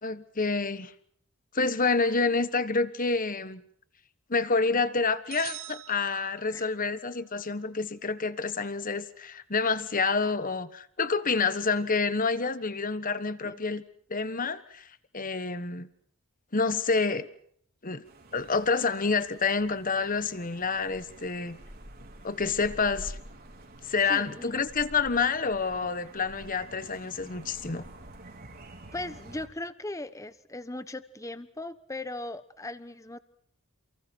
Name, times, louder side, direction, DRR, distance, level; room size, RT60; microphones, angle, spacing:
voice 1, 0.0-0.9 1.5-3.6 4.3-13.8 14.1-14.8 15.1-15.9 16.5-17.3 17.8-18.0 18.3-21.6 22.2-23.2 23.9-27.8, left 4 dB, 40° left, 1.4 m, -28 dB
sound 1, 5.3-6.9, right 14 dB, 65° right, 1.7 m, -44 dB
sound 2, 18.0-29.5, right 1 dB, 45° right, 4.4 m, -48 dB
voice 2, 24.1-24.6 28.9-33.2, left 2 dB, 15° left, 1.0 m, -38 dB
29.5 x 29.5 x 4.6 m
head